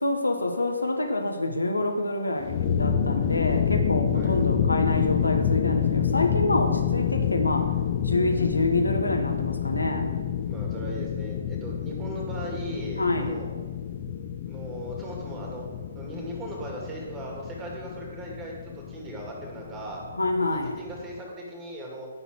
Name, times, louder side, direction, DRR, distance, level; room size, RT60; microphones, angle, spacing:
voice 1, 0.0-7.7 8.0-10.1 13.0-13.3 20.1-20.8, left 2 dB, 85° left, 4 dB, 1.0 m, -27 dB
sound 1, 2.4-21.2, left 8 dB, 40° left, 0.6 m, -28 dB
voice 2, 10.5-13.5 14.5-15.7 15.9-20.0 20.4-22.1, right 1 dB, 20° right, -1 dB, 2.2 m, -38 dB
10.0 x 4.2 x 6.1 m, 1.5 s
figure-of-eight pair, 130°, 0 cm